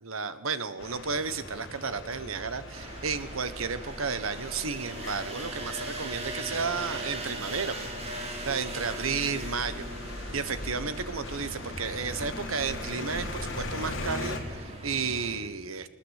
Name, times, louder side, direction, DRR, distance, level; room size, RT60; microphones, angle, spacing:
voice 1, 0.0-7.9 8.4-9.9 10.3-15.9, right 5 dB, 90° right, 12 dB, 1.3 m, -32 dB
sound 1, 0.8-14.4, left 2 dB, 70° left, 3.8 m, -40 dB
sound 2, 2.7-15.4, right 1 dB, 30° right, 3.8 m, -40 dB
21.0 x 19.5 x 8.3 m, 1.4 s
head